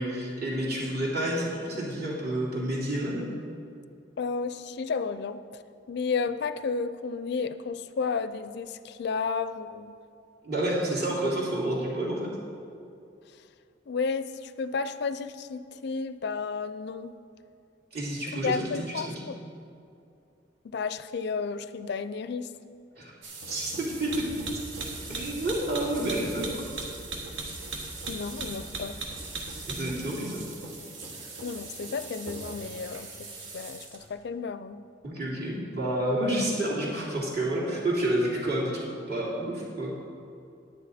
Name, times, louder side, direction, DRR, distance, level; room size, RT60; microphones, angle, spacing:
voice 1, 0.0-3.2 10.4-12.3 17.9-19.0 23.0-23.1 23.5-24.6 25.1-26.5 29.7-30.4 35.0-39.9, right 1 dB, 55° right, -5 dB, 2.9 m, -29 dB
voice 2, 4.2-5.6 5.9-10.0 13.9-17.1 18.4-19.4 20.6-22.5 28.1-29.0 31.4-34.8, left 5 dB, 60° left, 12 dB, 0.4 m, -32 dB
sound 1, 23.2-34.1, right 3 dB, 80° right, 1.5 m, -39 dB
10.5 x 9.9 x 4.2 m, 2.5 s
head